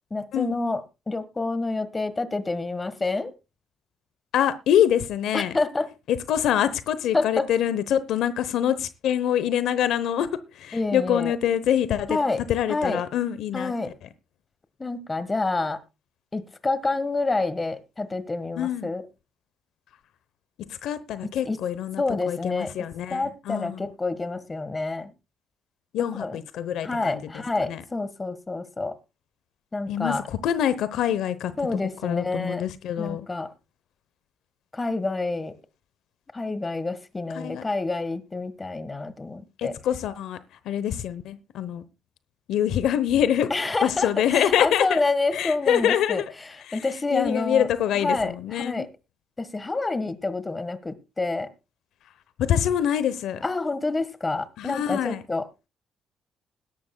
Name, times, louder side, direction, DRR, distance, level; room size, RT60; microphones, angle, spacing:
voice 1, 0.1-3.3 5.3-5.9 7.1-7.5 10.7-11.3 12.1-12.4 12.7-13.0 13.5-13.9 14.8-15.8 16.3-19.0 21.2-21.6 22.0-25.1 26.1-26.4 26.8-29.0 29.7-30.2 31.6-32.6 33.0-33.5 34.7-35.6 36.3-39.7 43.5-46.2 46.7-47.7 48.0-48.9 49.4-51.5 53.4-55.7, left 3 dB, 25° left, 1.4 m, -28 dB
voice 2, 4.3-5.5 6.1-12.2 12.5-13.9 18.6-18.9 20.7-23.9 25.9-27.8 29.9-31.5 32.0-33.3 37.4-37.6 39.6-40.4 40.6-41.8 42.5-43.5 43.8-45.0 45.3-46.3 46.7-48.8 52.4-53.4 54.6-55.2, left 10 dB, 80° left, 0.8 m, -25 dB
21.0 x 11.5 x 2.2 m
cardioid pair, 90°, 0 cm